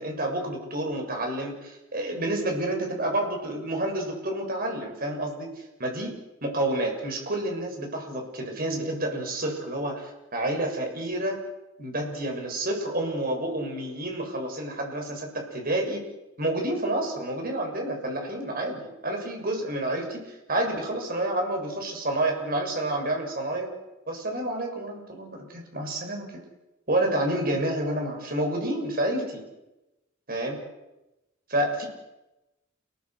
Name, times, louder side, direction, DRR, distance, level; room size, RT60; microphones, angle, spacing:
voice 1, 0.0-5.5 5.8-6.1 6.4-11.4 11.8-16.0 16.4-23.7 24.1-26.3 26.9-29.4 30.3-30.6 31.5-31.9, right 1 dB, 45° right, 2 dB, 6.9 m, -29 dB
29.0 x 19.0 x 8.3 m, 0.98 s
head